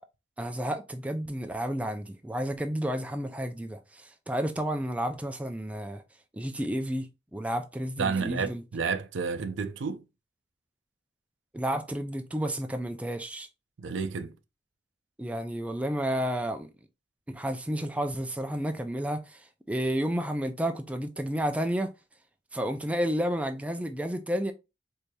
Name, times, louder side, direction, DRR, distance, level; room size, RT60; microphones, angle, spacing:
voice 1, 0.4-6.0 6.3-8.6 11.5-13.5 15.2-16.7 17.3-21.9 22.5-24.5, equal, 5° right, 0.3 m, -31 dB
voice 2, 8.0-10.0 13.8-14.3, right 5 dB, 85° right, 0.5 m, -31 dB
4.5 x 2.7 x 2.2 m
head